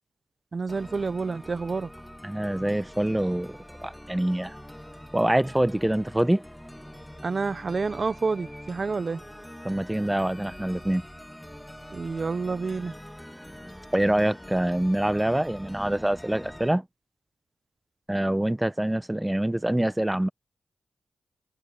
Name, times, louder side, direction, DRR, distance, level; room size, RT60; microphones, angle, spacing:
voice 1, 0.5-1.9 7.2-9.2 11.9-12.9, right 4 dB, 50° right, 0.9 m, -29 dB
sound 1, 0.7-16.7, equal, 5° left, 2.5 m, -44 dB
voice 2, 2.2-4.5 5.1-6.4 9.6-11.0 13.9-16.8 18.1-20.3, right 1 dB, 10° right, 1.0 m, -25 dB
cardioid pair, 55°, 0 cm